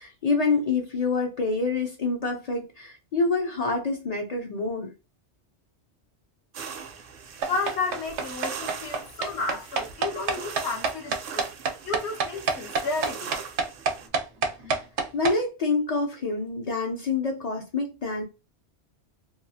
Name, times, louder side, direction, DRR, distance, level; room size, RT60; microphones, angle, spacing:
voice 1, 0.0-4.9 14.7-14.8 15.1-18.2, left 3 dB, 55° left, 0.4 m, -27 dB
sound 1, 6.5-14.1, right 6 dB, 60° right, 0.6 m, -41 dB
sound 2, 7.4-15.4, right 4 dB, 90° right, 0.9 m, -27 dB
voice 2, 7.5-11.5 11.8-13.4, left 4 dB, 75° left, 1.0 m, -32 dB
3.0 x 2.3 x 2.6 m
omnidirectional pair, 1.2 m